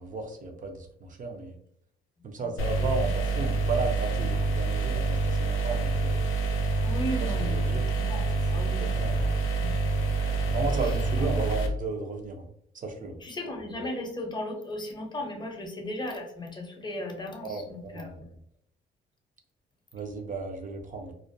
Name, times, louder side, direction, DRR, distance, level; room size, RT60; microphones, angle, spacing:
voice 1, 0.0-1.6 2.2-6.2 7.2-7.8 8.8-9.2 10.5-12.5 12.7-13.2 17.4-18.2 19.9-21.1, right 3 dB, 40° right, 4 dB, 0.5 m, -34 dB
sound 1, 2.6-11.7, right 3 dB, 75° left, 0.5 m, -27 dB
voice 2, 6.8-8.9 9.2-9.7 10.8-10.9 11.2-11.3 13.2-18.2, left 1 dB, 20° left, 2 dB, 0.6 m, -36 dB
2.4 x 2.1 x 2.6 m, 0.69 s
cardioid pair, 90°, 20 cm